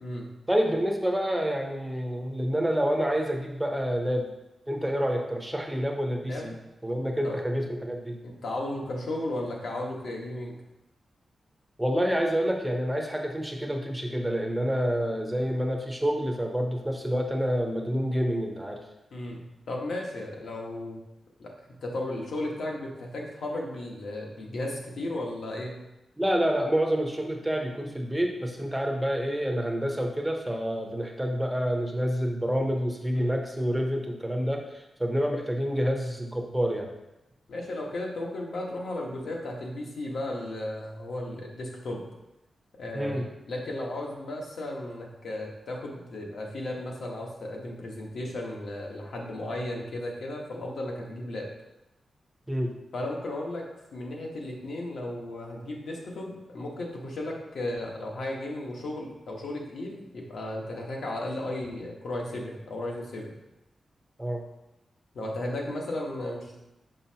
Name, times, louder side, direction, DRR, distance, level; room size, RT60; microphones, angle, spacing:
voice 1, 0.5-4.3 4.7-6.5 6.8-8.1 11.8-18.8 26.2-36.9 42.9-43.2 52.5-52.7 64.2-64.4, equal, 5° right, 2 dB, 0.8 m, -28 dB
voice 2, 8.4-10.5 19.1-21.0 21.4-21.5 21.8-25.8 33.1-33.4 37.5-42.0 42.8-51.5 52.9-53.6 53.9-63.3 65.1-66.6, left 1 dB, 70° left, -1 dB, 1.3 m, -35 dB
6.3 x 5.5 x 2.9 m, 0.94 s
wide cardioid pair, 140°, 0 cm